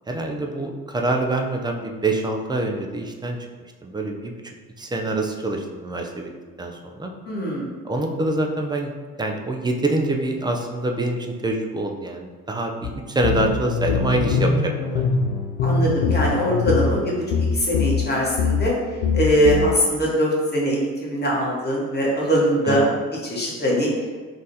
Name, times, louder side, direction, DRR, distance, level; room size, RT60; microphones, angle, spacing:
voice 1, 0.1-3.4 3.8-4.3 4.8-6.3 6.6-6.7 7.0-7.1 7.8-8.9 9.2-15.1 22.6-23.0, right 2 dB, 10° right, 2 dB, 0.4 m, -25 dB
voice 2, 7.3-7.7 15.6-17.2 17.5-18.7 19.1-22.9 23.2-23.9, equal, 25° left, -4 dB, 1.4 m, -21 dB
sound 1, 12.8-12.9 13.2-18.1 18.4-18.7 19.0-19.7, left 4 dB, 65° left, 0.5 m, -23 dB
3.9 x 2.5 x 2.7 m, 1.4 s
hypercardioid pair, 50°, 40 cm